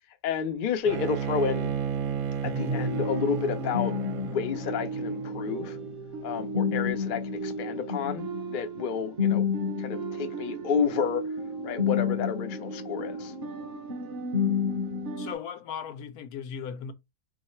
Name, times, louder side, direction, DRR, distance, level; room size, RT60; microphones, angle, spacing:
voice 1, 0.2-1.7 2.4-4.0 4.2-5.8 6.2-8.2 8.5-9.4 9.8-11.2 11.6-13.3, left 6 dB, 65° left, 0.5 m, -30 dB
Bowed string instrument, 0.9-5.9, right 8 dB, 75° right, 1.0 m, -34 dB
sound 1, 2.4-15.3, left 4 dB, 50° right, 0.7 m, -31 dB
voice 2, 15.2-16.9, left 7 dB, 85° left, 1.1 m, -37 dB
3.1 x 2.8 x 4.3 m
omnidirectional pair, 1.6 m